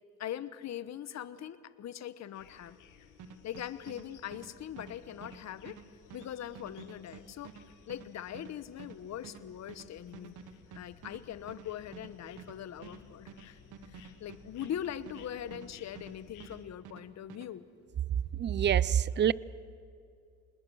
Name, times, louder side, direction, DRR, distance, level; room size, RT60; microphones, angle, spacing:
voice 1, 0.2-2.8 3.4-5.8 6.1-7.5 7.9-10.4 10.7-17.7, left 10 dB, 60° left, 14 dB, 1.1 m, -41 dB
sound 1, 2.3-16.6, left 6 dB, 90° left, 1.8 m, -58 dB
sound 2, 3.2-16.2 16.4-17.5, right 6 dB, 80° right, 1.5 m, -50 dB
voice 2, 18.3-19.3, right 9 dB, 35° right, 21 dB, 0.5 m, -26 dB
26.5 x 20.5 x 6.3 m, 2.5 s
cardioid pair, 90°, 30 cm